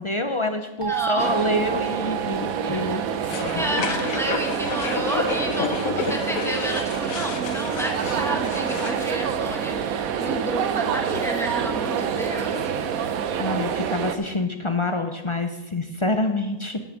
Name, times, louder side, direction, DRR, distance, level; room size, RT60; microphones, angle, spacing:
voice 1, 0.0-3.4 3.9-4.0 13.4-16.8, left 2 dB, 35° left, 6 dB, 0.5 m, -27 dB
sound 1, 0.8-5.5, right 15 dB, 65° right, 1.7 m, -33 dB
voice 2, 0.9-1.3 2.9-3.0 3.6-12.8, right 1 dB, ahead, 1 dB, 1.6 m, -31 dB
sound 2, 1.2-14.2, right 7 dB, 90° right, 1.2 m, -27 dB
sound 3, 3.2-9.1, left 6 dB, 80° left, 1.3 m, -31 dB
8.9 x 8.5 x 6.2 m, 1.0 s
omnidirectional pair, 1.4 m